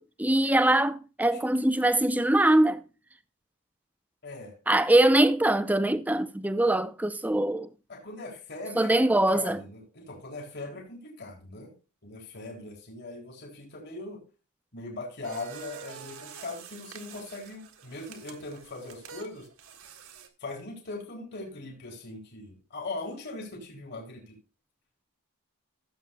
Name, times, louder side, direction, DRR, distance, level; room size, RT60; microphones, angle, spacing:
voice 1, 0.0-2.8 4.7-7.7 8.8-9.6, right 1 dB, 5° right, 0.6 m, -23 dB
voice 2, 4.2-4.5 7.9-11.7 12.0-14.2 14.7-19.5 20.4-24.3, left 2 dB, 50° left, 3.8 m, -40 dB
sound 1, 15.2-20.3, right 6 dB, 70° right, 1.7 m, -47 dB
16.0 x 8.1 x 2.2 m
head